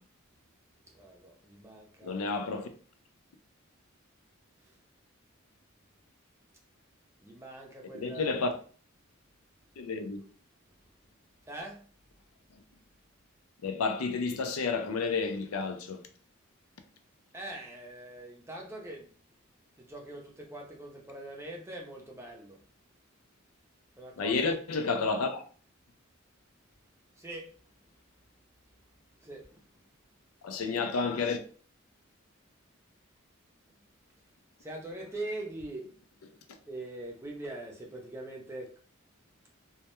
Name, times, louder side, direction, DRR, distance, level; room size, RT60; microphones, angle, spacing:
voice 1, 0.9-2.3 7.2-8.5 11.5-11.8 17.3-19.1 19.8-22.6 24.0-24.5 27.2-27.5 29.2-29.6 34.6-35.9 36.7-38.8, right 1 dB, 15° right, 0.5 m, -42 dB
voice 2, 2.0-2.7 7.9-8.5 9.8-10.3 13.6-16.0 24.2-25.4 30.4-31.4, left 4 dB, 85° left, 0.4 m, -30 dB
2.2 x 2.1 x 2.9 m
head